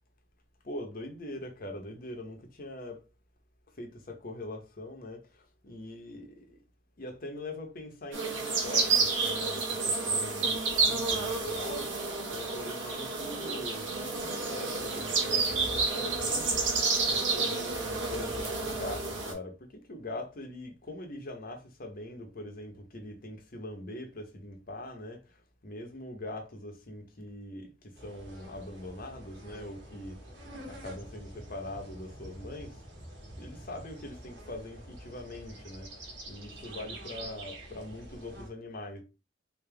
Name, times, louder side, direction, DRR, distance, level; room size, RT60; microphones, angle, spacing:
voice 1, 0.6-3.0 3.7-6.6 7.0-12.0 12.3-30.2 30.6-32.8 33.4-35.9 36.3-39.0, left 1 dB, 50° left, 0.9 m, -42 dB
sound 1, 8.1-19.3, right 4 dB, 85° right, 1.2 m, -30 dB
sound 2, 27.9-38.5, right 1 dB, 65° right, 1.3 m, -47 dB
3.4 x 2.8 x 3.3 m
head